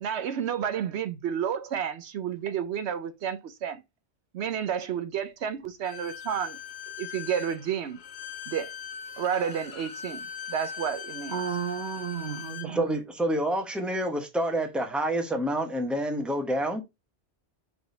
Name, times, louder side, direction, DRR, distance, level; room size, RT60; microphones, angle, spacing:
voice 1, 0.0-3.8 4.3-6.6 7.0-8.0 8.5-8.7 9.2-11.4, right 8 dB, 80° right, 1.0 m, -31 dB
Bowed string instrument, 5.8-12.7, left 8 dB, 70° left, 1.0 m, -40 dB
voice 2, 11.3-13.0, right 8 dB, 45° right, 1.1 m, -33 dB
voice 3, 12.6-16.8, right 1 dB, ahead, 1.1 m, -28 dB
4.9 x 3.8 x 5.1 m
omnidirectional pair, 1.1 m